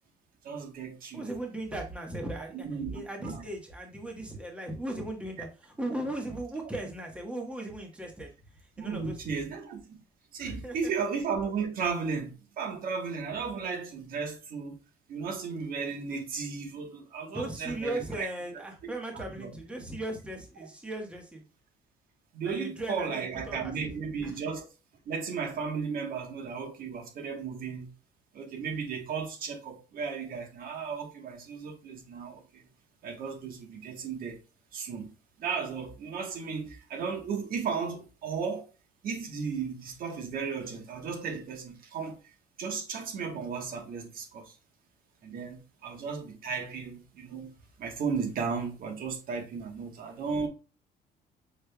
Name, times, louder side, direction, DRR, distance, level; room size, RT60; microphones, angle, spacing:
voice 1, 0.4-1.2 2.5-3.4 8.8-9.8 10.3-14.8 15.1-18.3 19.1-19.5 20.6-20.7 22.3-24.7 25.1-27.9 28.3-32.6 33.0-34.4 34.7-35.1 35.4-38.7 39.0-42.2 42.6-44.5 45.2-47.5 47.8-50.5, right 5 dB, 60° right, 1.2 m, -35 dB
voice 2, 1.1-2.7 2.9-8.3 8.8-9.4 10.4-10.9 17.3-21.4 22.4-23.9 24.2-24.3, right 1 dB, 5° right, 1.2 m, -37 dB
6.3 x 3.3 x 2.2 m
cardioid pair, 110°, 17 cm